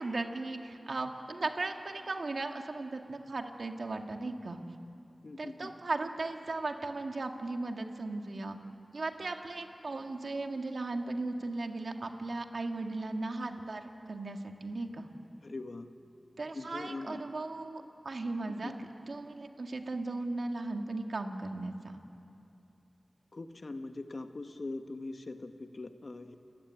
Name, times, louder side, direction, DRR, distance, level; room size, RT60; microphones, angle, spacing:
voice 1, 0.0-4.6 5.4-8.6 8.9-15.1 16.4-22.0, right 2 dB, 70° right, 4 dB, 2.0 m, -37 dB
voice 2, 5.2-5.7 15.4-15.9 16.5-17.2 18.4-18.7 23.3-26.4, left 2 dB, 60° left, 6 dB, 1.6 m, -42 dB
29.0 x 15.5 x 9.7 m, 2.7 s
wide cardioid pair, 50°, 0 cm